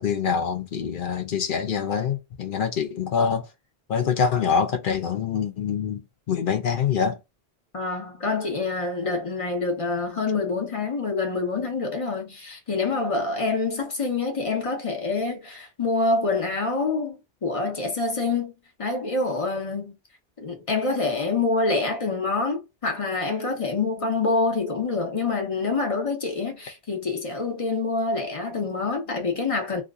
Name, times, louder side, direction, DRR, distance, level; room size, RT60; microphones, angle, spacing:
voice 1, 0.0-3.5 3.9-7.2, left 6 dB, 60° left, 0.8 m, -25 dB
voice 2, 7.7-18.5 18.8-19.9 20.4-29.8, left 3 dB, 35° left, 0.9 m, -26 dB
2.8 x 2.4 x 3.5 m
omnidirectional pair, 1.1 m